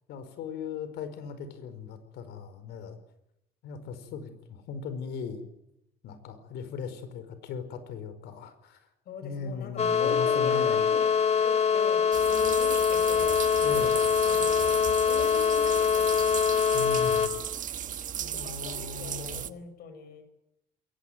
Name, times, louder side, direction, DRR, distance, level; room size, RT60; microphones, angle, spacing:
voice 1, 0.1-3.0 3.6-5.4 6.0-8.8 9.2-10.8 13.6-14.0 16.7-17.3 18.2-19.4, left 5 dB, 80° left, 11 dB, 4.9 m, -38 dB
voice 2, 9.1-13.4 13.7-16.5 18.3-20.2, left 5 dB, 65° left, 10 dB, 6.4 m, -41 dB
sound 1, 9.8-17.3, left 7 dB, 40° left, 3.3 m, -24 dB
sound 2, 12.1-19.5, right 9 dB, 50° right, 1.3 m, -36 dB
22.0 x 19.0 x 9.5 m, 0.83 s
cardioid pair, 110°, 17 cm